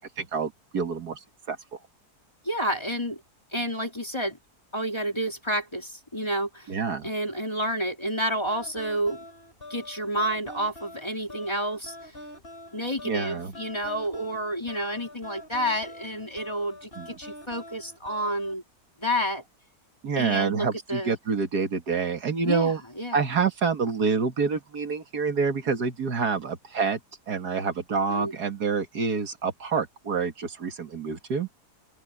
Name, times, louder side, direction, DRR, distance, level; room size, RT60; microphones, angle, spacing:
voice 1, 0.2-1.2 1.5-1.6 6.7-7.1 13.1-13.5 17.0-17.1 20.0-22.8 23.1-27.0 27.3-31.5, right 5 dB, 70° right, 2.3 m, -27 dB
voice 2, 2.4-3.2 3.5-4.4 4.7-6.7 7.0-9.2 9.7-12.0 12.7-18.6 19.0-19.4 20.1-21.2 22.4-23.2 28.1-28.3, equal, 15° left, 2.8 m, -30 dB
sound 1, 8.5-18.6, left 1 dB, 35° left, 5.7 m, -45 dB
omnidirectional pair, 1.7 m